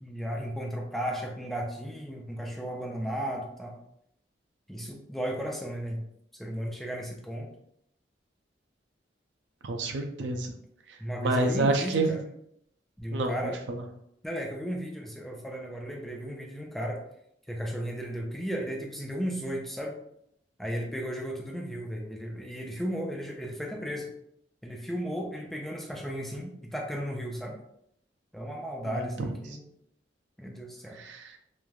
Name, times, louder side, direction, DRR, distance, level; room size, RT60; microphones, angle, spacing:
voice 1, 0.0-3.8 4.7-6.0 6.4-7.5 11.0-12.2 13.0-13.6 14.2-17.0 17.5-20.0 20.6-24.1 24.6-27.6 28.3-29.6 30.4-31.0, equal, ahead, -1 dB, 0.3 m, -35 dB
voice 2, 9.6-10.5 10.9-12.2 13.1-13.3 13.7-13.8 28.8-29.3 30.9-31.4, right 2 dB, 85° right, 4 dB, 0.4 m, -29 dB
3.2 x 2.2 x 2.4 m, 0.74 s
head